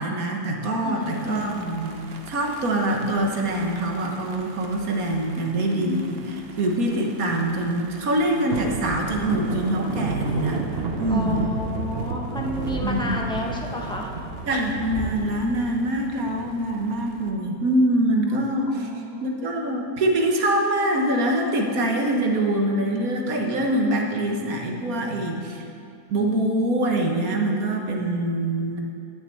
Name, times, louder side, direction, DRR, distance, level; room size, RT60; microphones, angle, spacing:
voice 1, 0.0-2.0 2.3-10.6 11.0-11.4 12.8-13.3 14.5-18.9 19.2-25.6 26.1-28.8, right 1 dB, 65° right, 1 dB, 1.7 m, -24 dB
voice 2, 0.8-1.7 11.1-14.1 18.7-19.3, left 1 dB, 5° left, -1 dB, 1.0 m, -31 dB
sound 1, 1.0-17.3, right 4 dB, 45° right, 0.9 m, -34 dB
9.3 x 6.6 x 8.5 m, 2.6 s
omnidirectional pair, 1.7 m